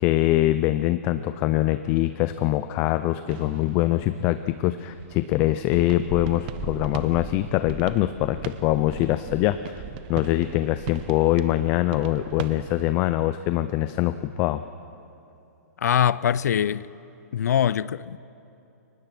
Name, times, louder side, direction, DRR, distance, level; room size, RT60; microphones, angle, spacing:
voice 1, 0.0-9.8 10.1-14.6, left 15 dB, 25° left, 0.5 m, -23 dB
sound 1, 3.3-12.9, right 11 dB, 35° right, 0.9 m, -41 dB
Purr, 5.6-11.9 12.7-12.8, right 4 dB, 20° right, 2.7 m, -40 dB
voice 2, 15.8-16.9 17.3-18.2, left 9 dB, 75° left, 0.6 m, -22 dB
29.5 x 24.0 x 6.0 m
hypercardioid pair, 160°, 9 cm